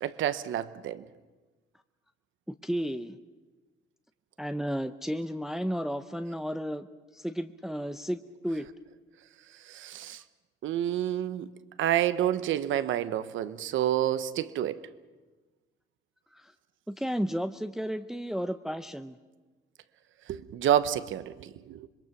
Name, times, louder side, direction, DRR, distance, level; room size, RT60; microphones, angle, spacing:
voice 1, 0.0-1.0 9.7-10.2 10.6-11.5 11.8-14.8 20.3-21.9, right 11 dB, 75° right, 1.0 m, -29 dB
voice 2, 2.5-3.2 4.4-6.9 7.1-8.7 16.3-16.5 16.9-19.2, equal, ahead, 0.7 m, -33 dB
26.0 x 22.0 x 6.0 m
cardioid pair, 90°, 20 cm